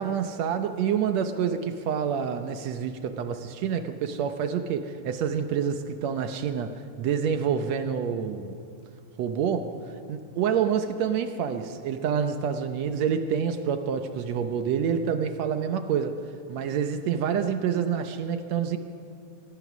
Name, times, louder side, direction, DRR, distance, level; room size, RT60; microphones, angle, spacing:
voice 1, 0.0-8.6 9.2-9.7 10.1-16.2 16.5-18.8, right 7 dB, 70° right, 8 dB, 1.9 m, -27 dB
24.0 x 19.0 x 6.2 m, 2.5 s
omnidirectional pair, 3.5 m